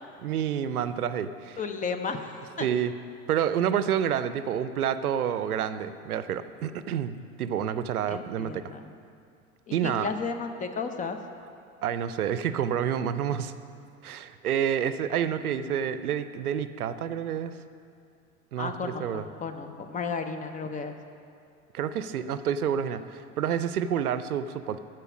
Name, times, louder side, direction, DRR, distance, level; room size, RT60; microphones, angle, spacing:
voice 1, 0.2-1.6 2.6-2.9 3.3-8.6 9.7-10.1 11.8-13.5 14.0-17.6 18.5-19.2 21.7-24.8, right 9 dB, 85° right, 12 dB, 0.6 m, -29 dB
voice 2, 1.6-2.7 8.1-8.9 9.7-11.2 18.6-20.9, left 5 dB, 20° left, 7 dB, 0.6 m, -34 dB
13.0 x 4.6 x 6.1 m, 2.4 s
hypercardioid pair, 85°, 43 cm